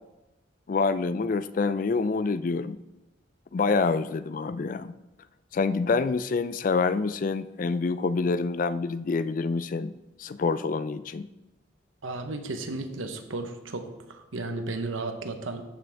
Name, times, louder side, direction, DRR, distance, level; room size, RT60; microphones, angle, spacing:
voice 1, 0.7-2.8 3.5-4.9 5.5-9.9 10.2-11.3, left 4 dB, 45° left, 14 dB, 0.3 m, -27 dB
voice 2, 12.0-15.6, right 2 dB, 90° right, 7 dB, 1.0 m, -34 dB
13.5 x 6.1 x 3.4 m, 0.99 s
head